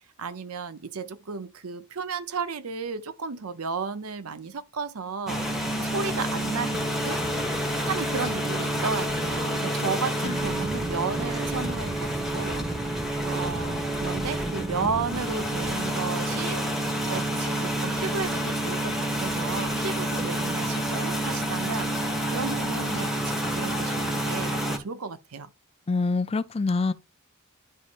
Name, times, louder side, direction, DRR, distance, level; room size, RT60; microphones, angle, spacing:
voice 1, 0.2-5.4 5.8-7.2 7.8-12.7 13.2-25.5, right 5 dB, 85° right, 0.7 m, -33 dB
sound 1, 5.3-24.8, right 1 dB, ahead, 1.3 m, -28 dB
voice 2, 25.9-26.9, left 3 dB, 30° left, 0.5 m, -26 dB
11.5 x 4.2 x 2.5 m
head